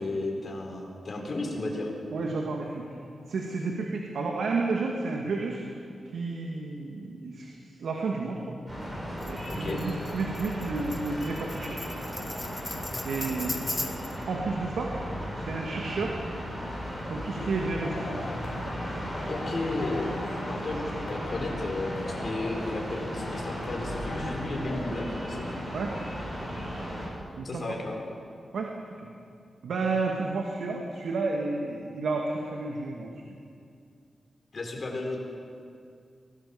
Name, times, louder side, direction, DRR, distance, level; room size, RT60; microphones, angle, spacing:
voice 1, 0.0-1.9 9.5-9.8 19.3-20.2 20.5-25.6 27.4-28.0 34.5-35.2, left 2 dB, 40° left, 1 dB, 4.4 m, -33 dB
voice 2, 2.1-3.0 3.3-5.6 6.1-8.5 9.3-11.8 13.0-13.6 14.3-14.9 15.4-16.2 17.1-18.3 22.2-22.3 25.7-25.9 27.4-27.6 28.5-28.7 29.6-33.1, right 3 dB, 80° right, 0 dB, 2.3 m, -31 dB
sound 1, 8.7-27.1, equal, 20° right, 7.2 m, -36 dB
Tambourine, 9.2-14.2, left 2 dB, 20° left, 1.4 m, -38 dB
sound 2, 17.3-24.9, left 3 dB, 70° left, 2.8 m, -42 dB
24.0 x 18.5 x 7.2 m, 2.4 s
wide cardioid pair, 140°, 0 cm